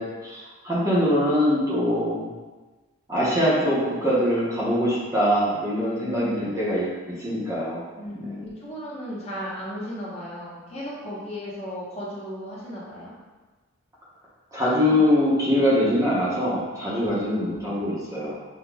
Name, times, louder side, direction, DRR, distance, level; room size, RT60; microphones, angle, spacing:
voice 1, 0.0-2.3 3.1-7.8 14.5-18.4, equal, 15° right, -8 dB, 0.7 m, -23 dB
voice 2, 6.0-6.4 8.0-13.1 17.0-17.2 17.5-17.8 18.1-18.3, equal, 30° left, -8 dB, 0.8 m, -36 dB
5.8 x 2.2 x 2.2 m, 1.3 s
head